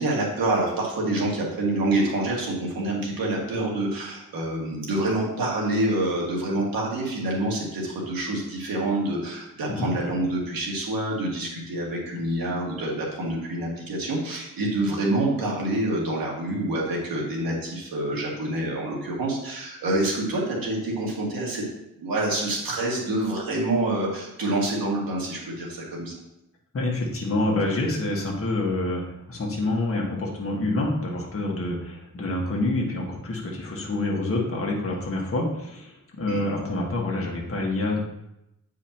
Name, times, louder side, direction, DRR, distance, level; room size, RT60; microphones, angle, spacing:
voice 1, 0.0-21.6 22.0-26.1 36.3-36.4, right 1 dB, 90° right, -2 dB, 2.0 m, -27 dB
voice 2, 26.7-29.0 29.3-38.0, left 2 dB, 40° left, -2 dB, 1.6 m, -27 dB
8.3 x 4.9 x 2.9 m, 0.87 s
wide cardioid pair, 120°, 34 cm